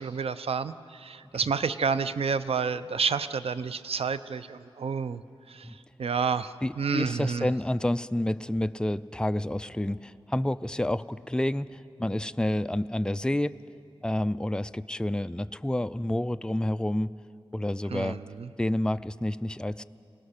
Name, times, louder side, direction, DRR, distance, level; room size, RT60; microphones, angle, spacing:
voice 1, 0.0-5.2 5.5-7.5 17.9-18.5, right 5 dB, 85° right, 13 dB, 0.6 m, -30 dB
voice 2, 6.6-13.6 14.0-17.1 17.5-18.2 18.6-19.8, left 1 dB, 10° left, 13 dB, 0.4 m, -29 dB
24.5 x 18.0 x 6.6 m, 2.5 s
wide cardioid pair, 100°, 10 cm